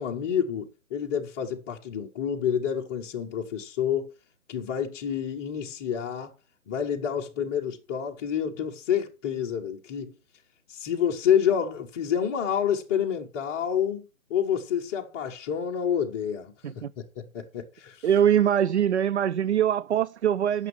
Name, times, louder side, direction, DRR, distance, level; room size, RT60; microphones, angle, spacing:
voice 1, 0.0-4.1 4.5-6.3 6.7-10.1 10.7-18.0, left 8 dB, 10° left, 0.8 m, -28 dB
voice 2, 18.0-20.7, right 9 dB, 55° right, 0.5 m, -23 dB
9.3 x 6.3 x 6.0 m
figure-of-eight pair, 150°, 41 cm